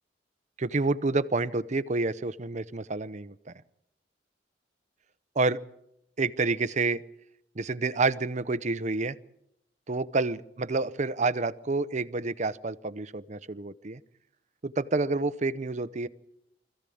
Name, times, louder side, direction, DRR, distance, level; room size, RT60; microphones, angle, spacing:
voice 1, 0.6-3.5 5.3-5.6 6.2-7.0 7.6-9.2 9.9-14.0 14.6-16.1, right 3 dB, 40° right, 15 dB, 0.8 m, -28 dB
25.0 x 15.0 x 8.6 m, 0.80 s
head